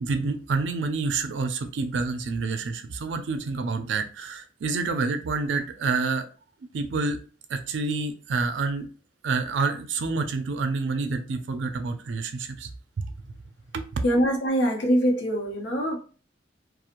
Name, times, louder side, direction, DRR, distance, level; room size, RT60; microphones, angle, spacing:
voice 1, 0.0-6.3 6.7-7.2 7.5-8.9 9.2-12.7 13.0-13.3 13.7-13.9, right 4 dB, 85° right, 0.4 m, -28 dB
voice 2, 14.0-16.0, equal, 80° left, 0.6 m, -23 dB
2.4 x 2.0 x 2.9 m
head